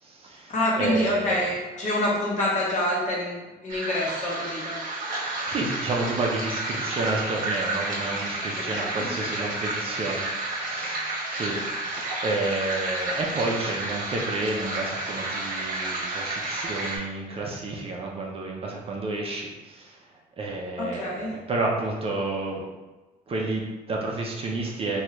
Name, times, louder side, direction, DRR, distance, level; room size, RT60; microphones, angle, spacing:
voice 1, 0.0-1.5 5.2-10.3 10.6-11.0 11.3-20.0 20.4-22.7 23.3-25.0, right 2 dB, 35° right, -1 dB, 0.5 m, -30 dB
voice 2, 0.5-4.8 8.8-9.1 20.8-21.3, left 1 dB, 45° left, -5 dB, 1.1 m, -26 dB
sound 1, 3.7-17.0, right 2 dB, 55° right, 0.9 m, -31 dB
3.1 x 2.3 x 2.9 m, 1.1 s
cardioid pair, 110°, 17 cm